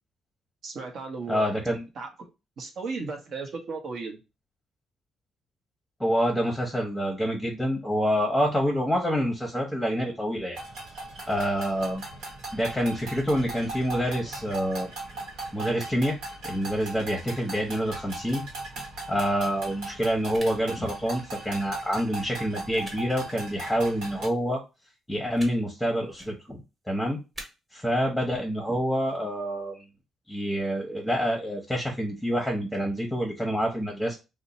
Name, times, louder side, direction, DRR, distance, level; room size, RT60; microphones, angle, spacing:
voice 1, 0.6-1.5 2.0-2.1 2.6-4.2, right 4 dB, 60° right, 3 dB, 0.9 m, -35 dB
voice 2, 1.3-1.8 6.0-10.6 11.3-12.0 12.5-14.9 15.5-16.2 16.4-18.4 19.1-24.6 25.1-27.2 27.7-29.8 30.3-34.2, equal, 5° left, 0 dB, 0.9 m, -27 dB
sound 1, 10.6-24.3, right 2 dB, 90° right, 1.1 m, -39 dB
sound 2, 18.7-18.9 20.3-20.5 21.5-21.6 22.8-23.0 24.0-24.2 25.3-25.5 26.1-26.3 27.3-27.4, right 1 dB, 25° right, 1.2 m, -42 dB
2.7 x 2.1 x 4.0 m, 0.27 s
cardioid pair, 90°, 0 cm